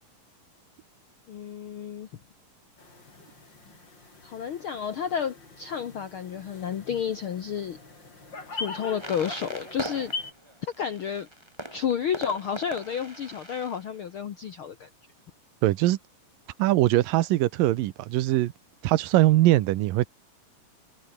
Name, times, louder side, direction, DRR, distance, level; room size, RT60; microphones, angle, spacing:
voice 1, 1.3-2.1 4.2-7.8 8.6-10.1 10.8-11.3 11.7-14.9, left 8 dB, 85° left, 1.1 m, -31 dB
sound 1, 2.8-10.3, left 3 dB, 30° left, 5.5 m, -42 dB
sound 2, 9.0-13.9, right 1 dB, 5° right, 4.2 m, -40 dB
voice 2, 15.6-16.0 16.6-18.5 18.8-20.1, right 16 dB, 75° right, 2.5 m, -21 dB
omnidirectional pair, 4.2 m